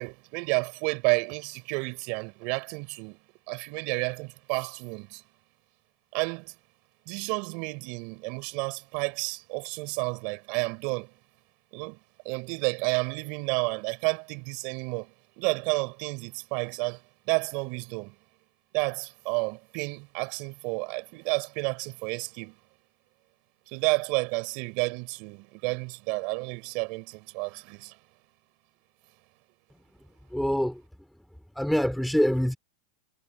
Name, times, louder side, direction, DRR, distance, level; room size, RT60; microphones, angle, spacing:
voice 1, 0.0-3.2 3.5-5.2 6.1-6.5 7.1-11.1 11.7-12.0 12.2-17.0 17.3-18.1 18.7-22.5 23.7-27.9, right 32 dB, 45° right, 6.7 m, -31 dB
voice 2, 30.3-30.8 31.5-32.6, equal, ahead, 2.8 m, -25 dB
supercardioid pair, 155°, 2 cm